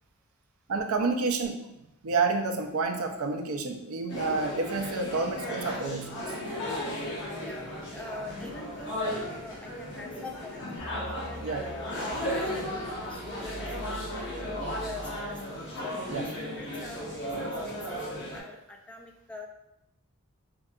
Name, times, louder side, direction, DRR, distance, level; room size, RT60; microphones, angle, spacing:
voice 1, 0.7-1.6 2.0-6.3 11.4-11.6 16.1-16.3, right 4 dB, 70° right, 4 dB, 0.4 m, -29 dB
sound 1, 4.1-18.4, equal, 55° left, 1.0 m, -35 dB
voice 2, 7.4-10.7 11.1-13.6 13.9-15.4 15.8-19.5, left 2 dB, 5° left, 0 dB, 0.3 m, -44 dB
sound 2, 10.8-15.8, equal, 20° right, 0.9 m, -43 dB
4.4 x 2.7 x 2.4 m, 0.86 s
head